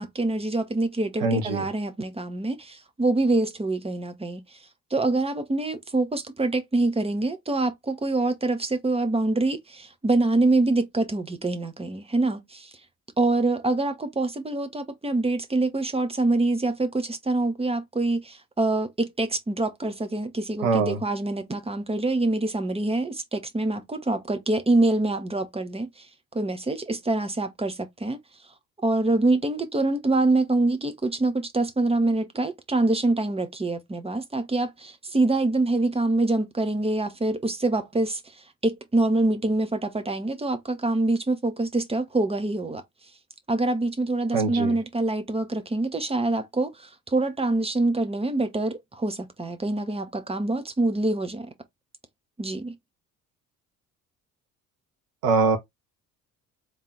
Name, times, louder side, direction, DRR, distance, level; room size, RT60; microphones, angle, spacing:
voice 1, 0.0-4.6 4.9-12.7 13.2-26.1 26.3-28.2 28.8-42.8 43.5-51.5 52.4-52.7, right 2 dB, 15° right, 1.1 m, -25 dB
voice 2, 1.2-1.7 20.6-21.0 44.3-44.8 55.2-55.6, right 4 dB, 70° right, 1.3 m, -23 dB
3.5 x 3.3 x 4.3 m
figure-of-eight pair, 50°, 43 cm